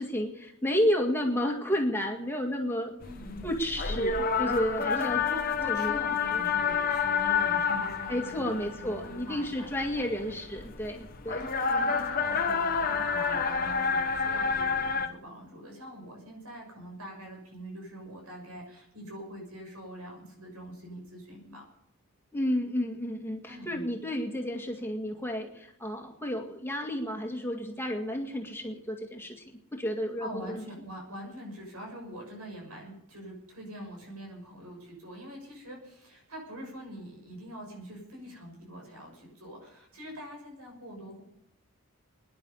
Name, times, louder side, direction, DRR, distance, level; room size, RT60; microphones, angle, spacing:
voice 1, 0.0-2.9 3.4-5.2 5.7-6.0 6.3-6.4 8.1-11.5 22.3-30.6, equal, 10° left, 2 dB, 1.9 m, -31 dB
sound 1, 3.0-15.1, left 5 dB, 40° left, 1.1 m, -29 dB
voice 2, 3.0-3.5 4.9-10.4 11.4-21.6 23.5-23.9 30.2-41.2, equal, 80° right, 1 dB, 6.7 m, -44 dB
23.5 x 10.5 x 5.5 m, 0.77 s
head